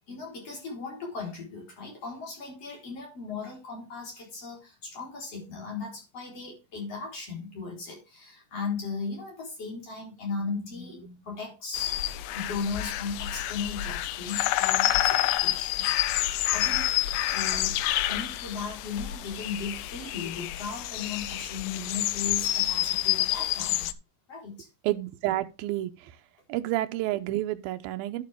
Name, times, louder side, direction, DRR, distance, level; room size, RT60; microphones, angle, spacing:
voice 1, 0.1-12.0 12.3-16.0 16.5-17.7 18.1-23.9 24.3-24.7, left 4 dB, 40° left, 5.3 m, -37 dB
sound 1, 11.7-23.9, left 14 dB, 80° left, 1.9 m, -28 dB
voice 2, 24.8-26.2 26.5-28.2, right 15 dB, 80° right, 2.5 m, -30 dB
11.0 x 7.3 x 3.5 m
omnidirectional pair, 4.3 m